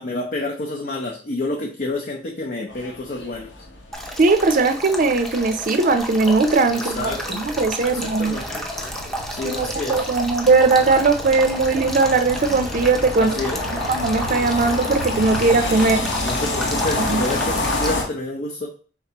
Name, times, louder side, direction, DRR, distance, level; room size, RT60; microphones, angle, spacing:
voice 1, 0.0-3.5 6.7-7.4 7.9-8.6 9.3-10.0 13.2-13.6 16.2-18.7, left 2 dB, 50° left, -1 dB, 0.6 m, -29 dB
sound 1, 2.7-18.0, left 2 dB, 85° left, 1.1 m, -29 dB
Male speech man speaking / Stream / Trickle dribble, 3.9-17.9, equal, ahead, 0.6 m, -32 dB
voice 2, 4.2-8.4 9.4-13.4 13.7-16.0 17.0-17.2, right 3 dB, 50° right, 9 dB, 0.5 m, -19 dB
4.5 x 3.5 x 2.9 m, 0.38 s
head